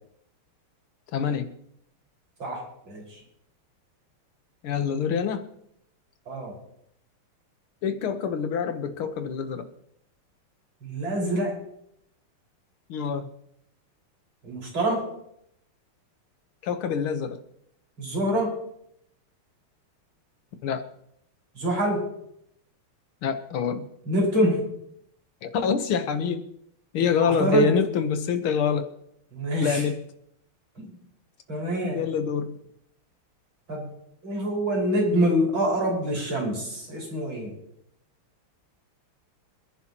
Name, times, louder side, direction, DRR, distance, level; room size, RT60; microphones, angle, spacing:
voice 1, 1.1-1.5 4.6-5.5 7.8-9.7 12.9-13.3 16.6-17.4 20.6-20.9 23.2-23.9 25.4-26.4 26.9-28.9 29.6-30.0 31.8-32.6, left 7 dB, 75° left, 8 dB, 2.0 m, -26 dB
voice 2, 2.4-3.2 6.3-6.5 10.8-11.5 14.4-15.1 18.0-18.5 21.5-22.1 24.1-24.6 27.2-27.7 29.3-29.9 30.8-30.9 31.5-32.0 33.7-33.9 34.2-37.5, right 1 dB, 65° right, -3 dB, 6.2 m, -25 dB
27.0 x 10.5 x 3.0 m, 0.76 s
omnidirectional pair, 2.4 m